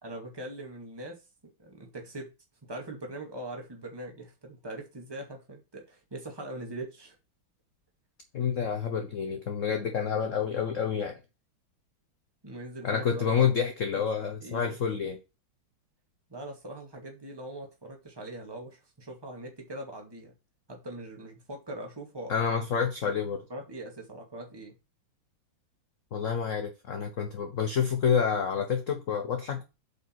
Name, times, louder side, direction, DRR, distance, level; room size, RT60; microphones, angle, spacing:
voice 1, 0.0-1.2 1.4-2.3 2.6-7.2 12.4-13.4 13.9-14.0 14.4-14.8 16.3-20.3 20.7-22.4 23.5-24.7, right 1 dB, 10° right, 2.1 m, -41 dB
voice 2, 8.3-11.2 12.8-15.2 22.3-23.5 26.1-29.6, left 7 dB, 50° left, 1.1 m, -28 dB
8.2 x 5.6 x 4.6 m
omnidirectional pair, 2.2 m